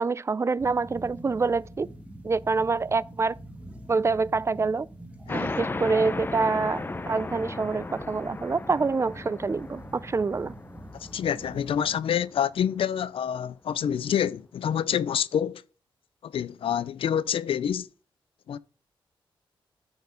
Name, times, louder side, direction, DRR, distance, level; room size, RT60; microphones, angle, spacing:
voice 1, 0.0-1.9 2.2-3.3 3.9-4.9 5.3-10.5, right 4 dB, 30° right, 0.3 m, -26 dB
sound 1, 0.6-12.0, right 1 dB, 15° right, 1.5 m, -44 dB
sound 2, 5.3-12.4, left 3 dB, 25° left, 0.6 m, -36 dB
voice 2, 10.9-15.6 16.2-17.9 18.5-18.6, left 9 dB, 80° left, 0.4 m, -27 dB
9.5 x 4.4 x 5.1 m
cardioid pair, 85°, 9 cm